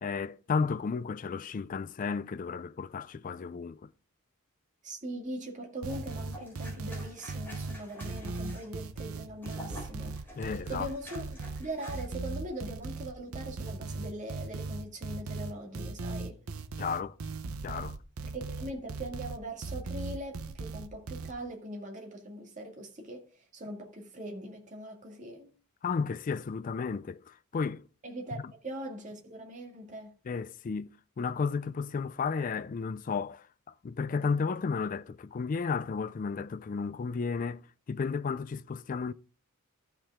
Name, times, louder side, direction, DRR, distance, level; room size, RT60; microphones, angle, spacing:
voice 1, 0.0-3.9 10.3-10.9 16.8-17.2 17.6-18.0 25.8-27.8 30.3-30.9 31.2-33.5 33.8-39.1, left 5 dB, 40° left, 0.3 m, -33 dB
voice 2, 4.8-10.2 10.7-16.4 18.2-23.2 23.5-25.5 28.0-30.1, right 1 dB, 35° right, 2.1 m, -41 dB
sound 1, 5.8-21.3, right 3 dB, 80° right, 0.7 m, -38 dB
sound 2, 5.9-12.4 12.7-12.9, left 1 dB, 10° left, 4.0 m, -50 dB
14.0 x 5.7 x 3.5 m
head